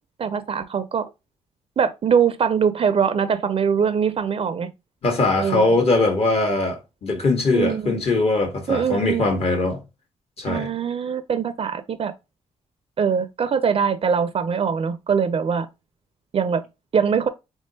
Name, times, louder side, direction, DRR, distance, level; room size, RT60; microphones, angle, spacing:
voice 1, 0.2-1.1 1.8-4.7 5.4-5.8 7.5-8.0 8.7-9.3 10.5-12.1 13.0-15.7 16.3-16.6 16.9-17.3, right 6 dB, 50° right, 0.4 m, -22 dB
voice 2, 5.0-9.8 10.4-10.7, left 2 dB, 50° left, 1.3 m, -21 dB
3.5 x 3.1 x 2.7 m
cardioid pair, 65°, 13 cm